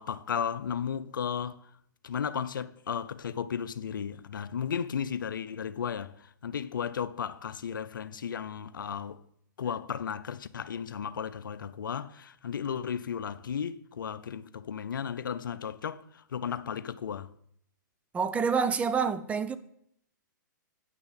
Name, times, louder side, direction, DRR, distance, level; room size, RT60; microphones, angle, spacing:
voice 1, 0.0-1.7 2.0-9.2 9.6-17.3, left 7 dB, 80° left, 0.6 m, -34 dB
voice 2, 18.1-19.6, right 6 dB, 15° right, 0.5 m, -27 dB
9.2 x 6.2 x 7.3 m
hypercardioid pair, 135°, 11 cm